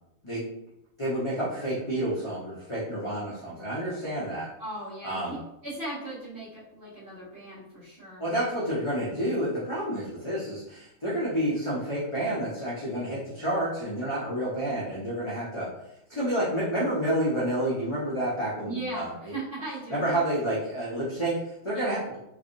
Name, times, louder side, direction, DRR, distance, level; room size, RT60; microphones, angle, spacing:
voice 1, 1.0-4.5 5.0-5.4 8.2-15.7 16.1-19.3 19.9-22.2, right 1 dB, 25° left, -8 dB, 0.7 m, -29 dB
voice 2, 4.6-8.3 18.6-20.2 21.7-22.0, right 2 dB, 45° right, -13 dB, 1.8 m, -38 dB
3.4 x 3.2 x 2.6 m, 0.83 s
omnidirectional pair, 1.5 m